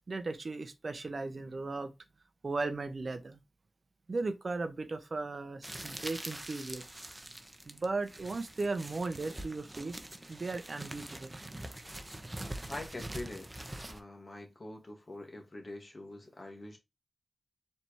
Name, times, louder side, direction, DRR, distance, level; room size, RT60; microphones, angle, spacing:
voice 1, 0.0-1.9 2.4-3.4 4.1-6.8 7.7-10.0 10.3-11.3, right 3 dB, 60° right, 0.7 m, -36 dB
sound 1, 5.6-14.0, right 1 dB, 25° right, 0.8 m, -44 dB
voice 2, 12.7-13.5 13.9-16.8, left 2 dB, 50° left, 1.6 m, -44 dB
4.2 x 3.3 x 2.9 m
cardioid pair, 45°, 0 cm